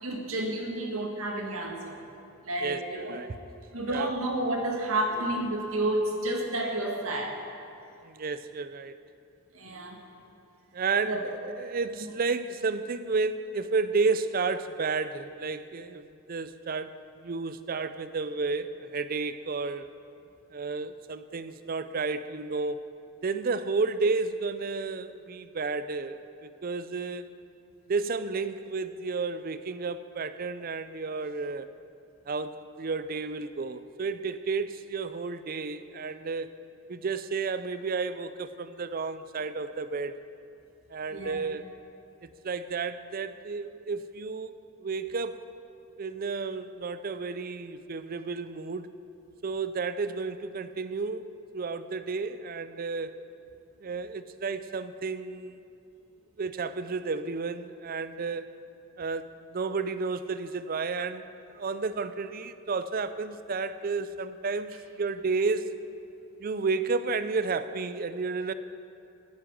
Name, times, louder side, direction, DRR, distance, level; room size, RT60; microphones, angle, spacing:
voice 1, 0.0-2.0 2.4-3.2 3.7-7.4 9.5-10.0 11.1-11.3 41.1-41.4, right 1 dB, 85° right, 1 dB, 1.8 m, -30 dB
voice 2, 2.6-3.4 3.9-4.1 8.0-9.0 10.7-19.9 20.5-22.8 23.2-27.3 27.9-31.7 32.3-36.5 36.9-40.1 40.9-41.7 42.2-44.5 44.8-45.5 46.0-48.9 49.4-53.2 53.8-55.6 56.4-58.6 59.0-61.2 61.5-65.7 66.4-68.5, right 4 dB, 45° right, 13 dB, 0.4 m, -32 dB
9.7 x 9.7 x 8.1 m, 2.6 s
head